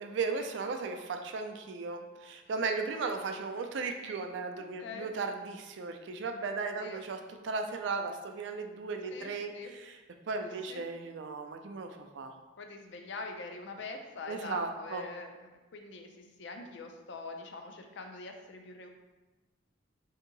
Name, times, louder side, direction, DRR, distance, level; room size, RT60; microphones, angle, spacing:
voice 1, 0.0-10.0 10.3-12.3 14.3-15.0, right 4 dB, 65° right, 5 dB, 0.3 m, -36 dB
voice 2, 4.8-5.1 6.8-7.0 9.1-9.7 10.4-10.8 12.6-18.9, left 3 dB, 60° left, 4 dB, 0.4 m, -44 dB
2.8 x 2.7 x 3.8 m, 1.2 s
head